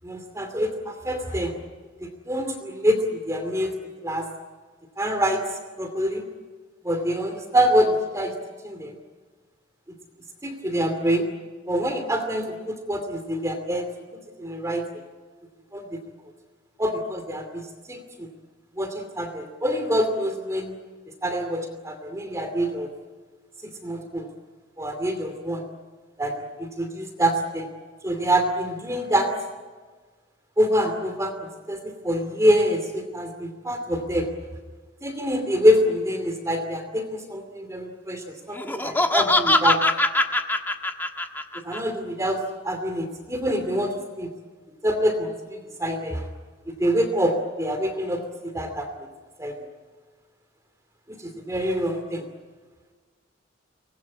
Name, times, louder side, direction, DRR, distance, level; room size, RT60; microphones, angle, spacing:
voice 1, 0.0-1.5 2.0-3.7 4.0-4.3 5.0-5.4 5.8-6.2 6.8-8.3 8.6-9.0 10.4-11.2 11.7-13.9 14.4-14.8 15.7-15.8 16.8-17.6 17.9-18.3 18.8-20.8 21.2-22.9 23.8-24.3 24.8-25.6 26.2-27.7 28.0-29.3 30.6-31.3 31.7-34.3 35.0-39.8 41.6-44.3 44.8-46.3 46.8-48.2 48.5-48.9 49.4-49.5 51.5-52.2, equal, 15° right, 6 dB, 2.6 m, -25 dB
Laughter, 38.5-41.8, left 2 dB, 10° left, 1.4 m, -22 dB
24.5 x 20.0 x 9.8 m, 1.4 s
head